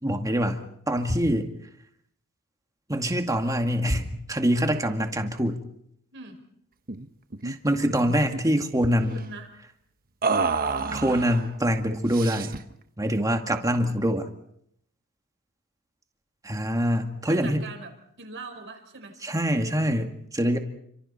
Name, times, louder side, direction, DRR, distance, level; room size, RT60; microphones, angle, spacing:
voice 1, 0.0-1.5 2.9-5.6 7.4-9.2 10.9-12.5 13.0-14.3 16.4-17.6 19.2-20.6, equal, 15° right, 5 dB, 2.2 m, -25 dB
sound 1, 6.9-7.1 7.3-7.5 7.9-8.6 10.2-11.5 12.1-12.7, right 4 dB, 40° right, 1.2 m, -29 dB
voice 2, 8.3-9.5 17.3-17.9 18.2-19.2, right 3 dB, 55° right, 5 dB, 4.9 m, -42 dB
29.5 x 26.0 x 4.4 m, 0.72 s
head